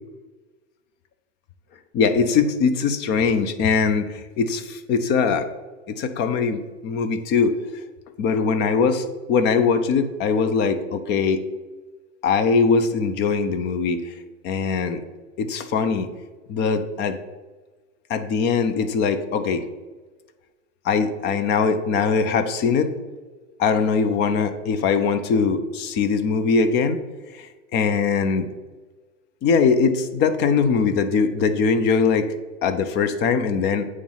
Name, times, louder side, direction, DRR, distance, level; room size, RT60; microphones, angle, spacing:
voice 1, 1.9-5.5 5.9-7.5 8.2-11.4 12.2-14.1 14.4-15.0 15.4-16.1 16.5-17.2 18.1-19.6 20.8-22.9 23.6-27.0 27.3-28.5 29.4-33.9, left 5 dB, 30° left, 10 dB, 0.6 m, -21 dB
8.5 x 3.2 x 5.5 m, 1.3 s
hypercardioid pair, 130°, 39 cm